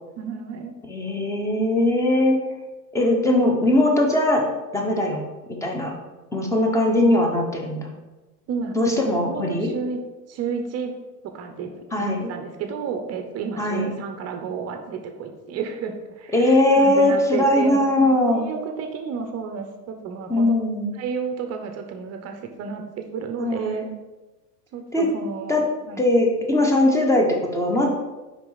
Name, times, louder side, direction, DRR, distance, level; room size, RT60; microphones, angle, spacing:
voice 1, 0.2-0.7 8.5-8.9 9.2-10.0 10.3-10.9 11.2-20.5 20.9-23.9 24.7-26.0, right 6 dB, 30° right, 5 dB, 0.8 m, -31 dB
voice 2, 0.9-2.4 2.9-4.4 4.7-5.2 5.6-5.9 6.3-7.9 8.7-9.7 11.9-12.3 13.6-13.9 16.3-18.5 20.3-20.9 23.4-23.9 24.9-25.1 25.5-25.6 26.0-27.9, left 1 dB, 5° left, 1 dB, 1.1 m, -20 dB
5.9 x 5.2 x 4.0 m, 1.1 s
hypercardioid pair, 115°, 48 cm